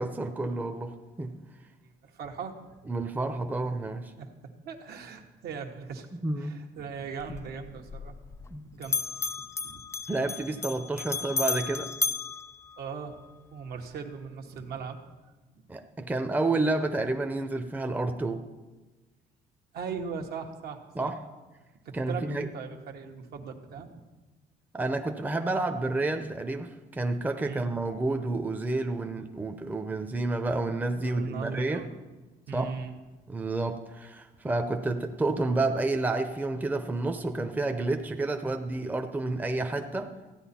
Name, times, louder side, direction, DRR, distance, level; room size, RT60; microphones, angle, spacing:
voice 1, 0.0-1.3 2.9-4.1 6.1-6.6 8.5-8.7 10.1-11.9 15.7-18.4 20.9-21.2 21.9-22.5 24.7-31.9 32.5-32.8 33.3-40.3, right 2 dB, 10° right, 6 dB, 0.7 m, -30 dB
voice 2, 2.0-2.5 4.2-6.1 6.4-8.2 8.6-9.3 9.6-9.8 12.8-13.2 13.5-15.0 19.7-21.1 21.8-23.9 27.4-27.7 31.0-31.9 32.5-33.0, right 5 dB, 70° right, 4 dB, 1.4 m, -39 dB
Bell, 7.2-8.6 8.8-13.3, left 5 dB, 15° left, 0.3 m, -34 dB
14.5 x 9.7 x 4.3 m, 1.2 s
cardioid pair, 110°, 17 cm